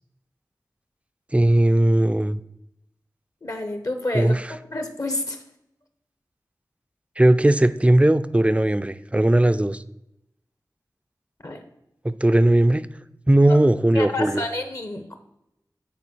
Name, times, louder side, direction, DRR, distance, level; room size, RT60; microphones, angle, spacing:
voice 1, 1.3-2.4 4.1-4.4 7.2-9.8 12.0-12.8 13.3-14.4, right 1 dB, 15° right, 12 dB, 0.4 m, -18 dB
voice 2, 3.4-4.3 4.7-5.4 11.4-11.6 13.9-15.2, left 2 dB, 50° left, 7 dB, 1.0 m, -29 dB
8.8 x 4.3 x 6.2 m, 0.84 s
wide cardioid pair, 65°, 7 cm